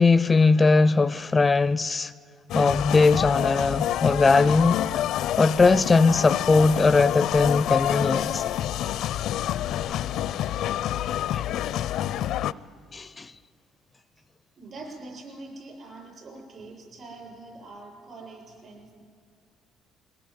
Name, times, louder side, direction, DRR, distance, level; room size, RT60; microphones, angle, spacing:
voice 1, 0.0-2.1 2.5-4.8 5.1-8.4 9.9-10.0 10.3-10.4 11.3-11.4 12.9-13.3, left 3 dB, 20° left, 0.5 m, -20 dB
sound 1, 2.5-12.5, left 12 dB, 70° left, 0.5 m, -27 dB
voice 2, 14.6-19.0, right 2 dB, 45° right, 6.8 m, -43 dB
22.0 x 17.0 x 9.6 m
cardioid pair, 105°, 0 cm